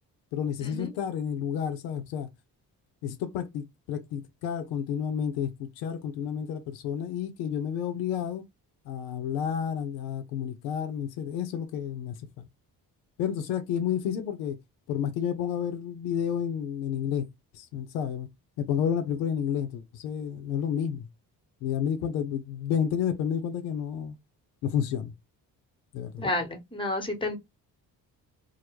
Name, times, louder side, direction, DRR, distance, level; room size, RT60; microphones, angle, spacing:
voice 1, 0.3-2.3 3.0-8.4 8.9-12.5 13.2-14.6 14.9-17.3 17.5-18.3 18.6-21.1 21.6-24.2 24.6-25.1 25.9-26.2, left 8 dB, 80° left, 0.5 m, -30 dB
voice 2, 26.2-27.4, left 2 dB, 10° left, 0.9 m, -30 dB
2.1 x 2.0 x 2.8 m
hypercardioid pair, 40°, 48 cm